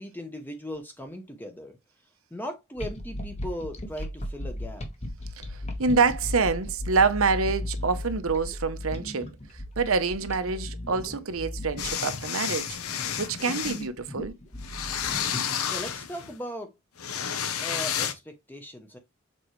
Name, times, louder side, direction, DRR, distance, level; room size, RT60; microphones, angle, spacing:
voice 1, 0.0-1.8 2.3-4.8 15.7-16.7 17.6-19.0, equal, 10° left, 0.8 m, -38 dB
sound 1, 2.8-15.9, left 1 dB, 30° left, 1.3 m, -36 dB
voice 2, 5.4-9.3 9.8-12.8 13.2-14.3, right 4 dB, 75° right, 0.8 m, -26 dB
sound 2, 11.8-13.8 14.6-16.3 17.0-18.1, left 8 dB, 85° left, 0.9 m, -31 dB
7.0 x 4.5 x 3.1 m
head